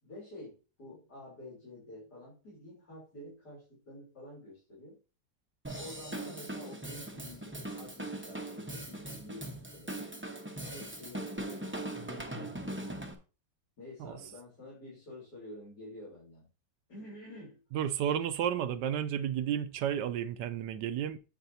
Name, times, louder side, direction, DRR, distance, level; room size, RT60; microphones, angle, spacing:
voice 1, 0.0-5.0 5.8-10.0 10.6-13.1 13.8-16.5 16.9-17.6, left 1 dB, 55° left, 4.3 m, -49 dB
Drum kit / Drum, 5.6-13.1, right 1 dB, 10° right, 0.6 m, -40 dB
voice 2, 17.7-21.2, right 9 dB, 75° right, 1.2 m, -32 dB
9.1 x 7.9 x 2.8 m
omnidirectional pair, 2.1 m